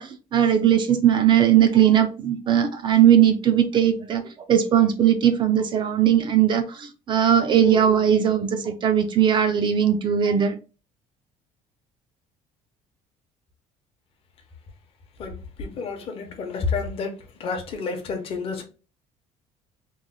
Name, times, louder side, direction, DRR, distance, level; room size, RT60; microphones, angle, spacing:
voice 1, 0.0-4.2 4.5-10.6, right 9 dB, 35° right, 0.3 m, -19 dB
voice 2, 15.2-17.1 17.4-18.6, left 4 dB, 40° left, 0.7 m, -30 dB
3.1 x 2.1 x 3.7 m
cardioid pair, 165°, 14 cm